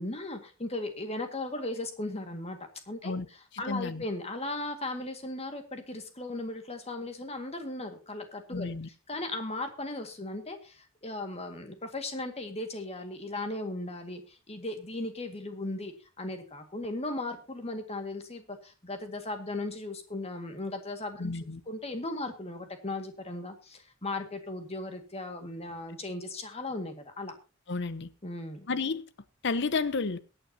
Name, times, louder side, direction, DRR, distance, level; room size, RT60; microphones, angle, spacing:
voice 1, 0.0-8.7 9.1-21.4 21.7-27.3 28.2-28.7, left 2 dB, 30° left, 1.9 m, -37 dB
voice 2, 3.5-4.0 8.5-8.9 21.2-21.6 27.7-28.1 28.7-29.0 29.4-30.2, left 4 dB, 60° left, 0.8 m, -31 dB
22.5 x 9.0 x 2.8 m
head